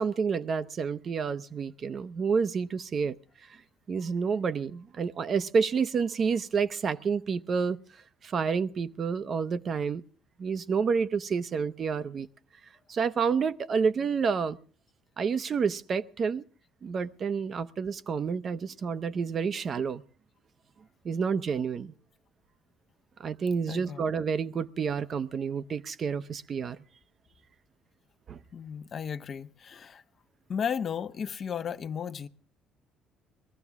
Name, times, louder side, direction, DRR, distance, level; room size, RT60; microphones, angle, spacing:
voice 1, 0.0-3.2 3.9-7.8 8.2-10.0 10.4-12.3 12.9-14.6 15.2-16.4 16.8-20.0 21.0-21.9 23.2-26.8 28.3-28.4, right 5 dB, 50° right, 0.7 m, -29 dB
voice 2, 23.7-24.0 28.5-30.0 30.5-32.3, left 7 dB, 50° left, 0.7 m, -34 dB
21.0 x 14.5 x 3.6 m
hypercardioid pair, 60°, 0 cm